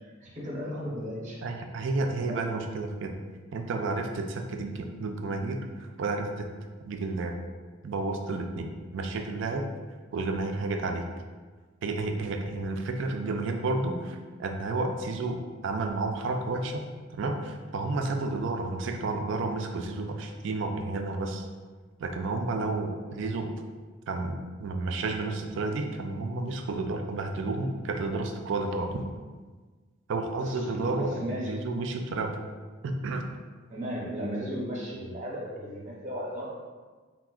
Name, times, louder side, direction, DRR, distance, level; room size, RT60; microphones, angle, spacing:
voice 1, 0.2-1.5 2.1-2.4 30.4-31.5 33.7-36.5, equal, 40° right, -4 dB, 0.8 m, -35 dB
voice 2, 1.4-3.2 3.5-6.5 6.8-7.4 7.8-9.7 10.1-11.0 11.8-16.8 17.1-21.5 22.0-23.5 24.1-29.1 30.1-32.4 32.8-33.3, right 3 dB, 65° right, 4 dB, 0.3 m, -31 dB
4.4 x 2.1 x 2.3 m, 1.4 s
head